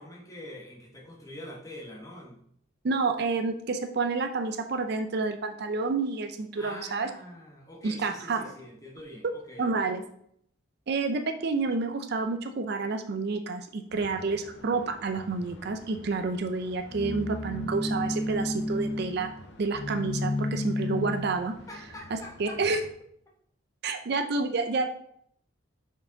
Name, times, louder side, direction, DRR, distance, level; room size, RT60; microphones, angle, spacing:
voice 1, 0.0-2.4 6.6-9.9 21.7-22.6, left 1 dB, 15° left, -2 dB, 1.1 m, -45 dB
voice 2, 2.8-7.1 7.8-8.5 9.6-10.0 10.9-19.3 19.6-21.5 22.1-22.8 23.8-24.9, right 4 dB, 50° right, 7 dB, 0.4 m, -29 dB
sound 1, 13.9-22.9, left 1 dB, 55° left, 0.7 m, -34 dB
5.7 x 4.6 x 3.8 m, 0.69 s
head